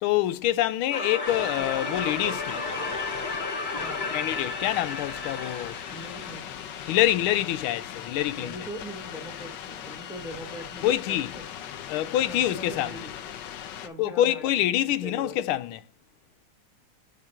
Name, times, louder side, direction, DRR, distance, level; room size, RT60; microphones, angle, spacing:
voice 1, 0.0-2.6 4.1-5.8 6.9-8.5 10.8-11.3 11.9-12.9 14.0-15.8, left 13 dB, 90° left, 1.5 m, -26 dB
sound 1, 0.9-7.8, left 3 dB, 30° left, 1.0 m, -33 dB
sound 2, 1.3-13.9, left 9 dB, 70° left, 1.3 m, -39 dB
voice 2, 3.7-4.0 5.9-6.5 8.4-11.4 12.3-13.1 13.8-14.5 14.8-15.4, equal, ahead, 0.7 m, -41 dB
7.4 x 5.1 x 4.3 m
omnidirectional pair, 2.2 m